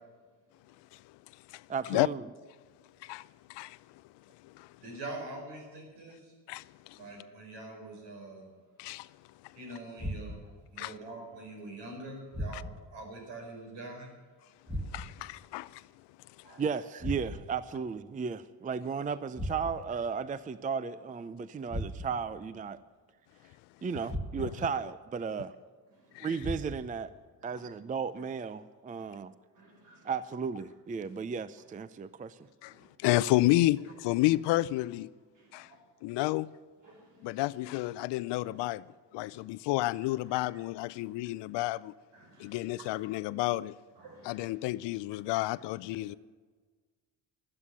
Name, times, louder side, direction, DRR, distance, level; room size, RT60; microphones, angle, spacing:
voice 1, 1.7-2.2 16.6-22.8 23.8-25.5 26.2-27.1 27.4-29.3 30.0-32.4, right 6 dB, 20° right, 0.5 m, -35 dB
voice 2, 3.0-3.8 4.6-4.7 6.5-7.0 8.8-9.1 10.8-10.9 12.5-12.6 14.9-15.8 24.4-24.5 26.1-26.3 32.6-32.7 33.0-35.1 35.5-35.7 36.0-36.5 37.2-38.8 39.1-41.9 42.4-43.7 44.2-46.1, left 17 dB, 70° left, 0.6 m, -30 dB
voice 3, 4.8-6.3 6.9-8.5 9.5-14.1 16.4-16.8 25.9-26.3 27.4-27.5 29.0-29.1 29.5-30.1 32.7-32.9 35.3-35.8 36.8-37.4 38.4-38.6 39.2-39.4 40.3-40.4 42.1-42.9 44.0-44.5 45.1-45.2, right 2 dB, 70° right, 5.0 m, -46 dB
sound 1, 10.0-10.6 12.3-13.0 14.7-15.3 17.0-17.6 19.3-20.0 21.7-22.3 24.1-24.7 26.4-27.0, equal, 5° right, 1.8 m, -38 dB
12.0 x 9.6 x 9.9 m
supercardioid pair, 75°, 44 cm